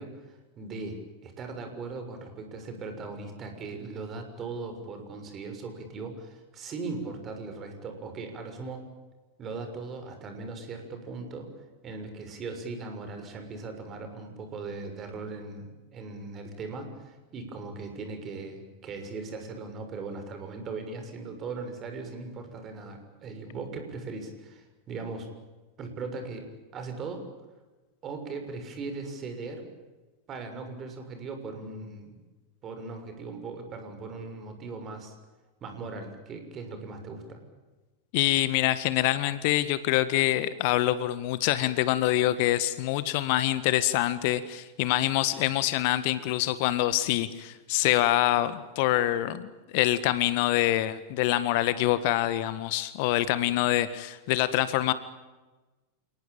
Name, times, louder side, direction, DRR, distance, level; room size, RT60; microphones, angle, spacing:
voice 1, 0.0-8.8 9.4-11.5 11.8-25.3 25.8-27.3 28.0-29.7 30.3-32.2 32.6-35.1 35.6-37.4, right 3 dB, 30° right, 6 dB, 6.7 m, -39 dB
voice 2, 38.1-54.9, left 15 dB, 50° left, 14 dB, 1.6 m, -25 dB
29.5 x 19.0 x 9.0 m, 1.2 s
figure-of-eight pair, 90°, 0 cm